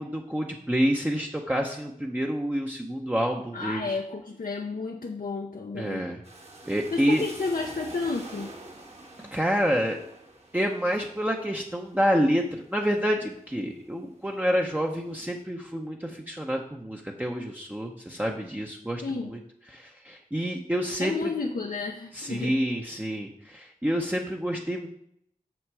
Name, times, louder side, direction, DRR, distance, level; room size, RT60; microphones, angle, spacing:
voice 1, 0.0-3.9 5.7-6.2 6.7-7.2 9.2-10.0 10.5-19.4 19.7-21.3 22.1-24.9, equal, 10° right, 0 dB, 0.7 m, -28 dB
voice 2, 3.5-6.1 6.9-8.5 19.0-19.3 21.0-22.6, left 4 dB, 80° left, 1 dB, 0.7 m, -31 dB
sound 1, 6.2-13.9 14.4-15.1, right 2 dB, 45° right, 1.5 m, -47 dB
6.4 x 6.1 x 4.7 m, 0.71 s
wide cardioid pair, 60°, 15 cm